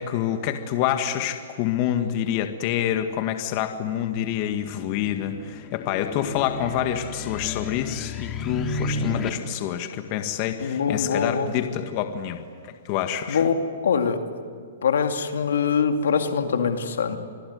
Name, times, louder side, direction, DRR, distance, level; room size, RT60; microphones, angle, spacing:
voice 1, 0.0-12.4 12.9-13.4, left 10 dB, 40° left, 7 dB, 1.8 m, -27 dB
sound 1, 4.4-9.3, left 2 dB, 20° left, 2.5 m, -33 dB
voice 2, 10.6-11.5 13.3-13.6 13.8-14.2 14.8-17.2, left 6 dB, 80° left, 7 dB, 2.4 m, -23 dB
27.0 x 20.5 x 9.6 m, 2.2 s
hypercardioid pair, 145°, 0 cm